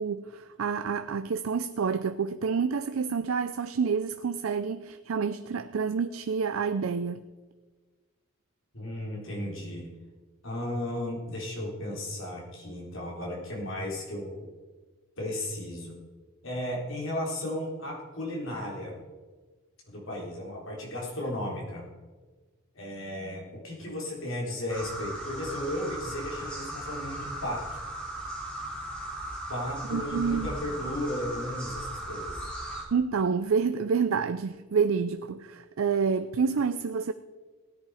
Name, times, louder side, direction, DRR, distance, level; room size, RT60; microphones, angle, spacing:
voice 1, 0.0-7.2 29.9-30.6 32.9-37.1, right 5 dB, 70° right, 0.5 m, -28 dB
voice 2, 8.7-9.9 10.4-14.5 15.2-16.0 16.4-19.0 19.9-21.8 22.7-27.6 29.5-32.5, left 1 dB, 65° left, 4.0 m, -35 dB
sound 1, 24.7-32.8, right 1 dB, 5° left, 2.7 m, -37 dB
16.5 x 10.5 x 4.9 m
head